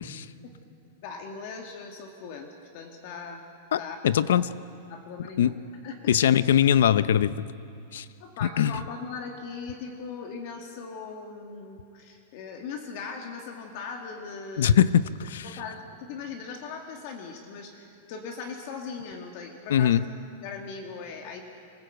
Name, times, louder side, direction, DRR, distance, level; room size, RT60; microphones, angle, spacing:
voice 1, 1.0-3.4 3.8-4.0 4.4-4.5 4.9-5.5 5.8-6.2 8.2-14.9 15.4-19.9 20.4-21.4, left 5 dB, 45° left, 3 dB, 1.9 m, -39 dB
voice 2, 3.7-4.5 5.4-5.5 6.1-7.5 7.9-8.0 8.4-8.7 14.6-15.6 19.7-20.0, left 9 dB, 85° left, 16 dB, 0.7 m, -22 dB
26.0 x 15.5 x 8.0 m, 2.6 s
supercardioid pair, 160°, 0 cm